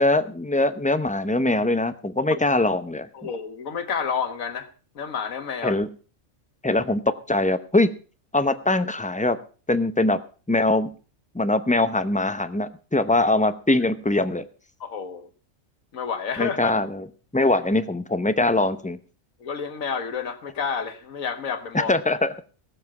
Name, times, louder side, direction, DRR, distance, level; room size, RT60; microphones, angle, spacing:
voice 1, 0.0-3.1 5.6-5.9 6.6-7.0 7.3-7.9 8.3-9.4 9.7-10.2 10.5-10.9 11.3-14.5 16.4-17.1 17.3-19.0 21.7-22.4, left 2 dB, 10° left, 11 dB, 0.5 m, -22 dB
voice 2, 3.1-4.7 5.0-5.8 14.8-15.3 15.9-16.7 19.4-21.9, left 6 dB, 80° left, 9 dB, 1.8 m, -30 dB
17.0 x 7.4 x 6.0 m, 0.39 s
omnidirectional pair, 1.4 m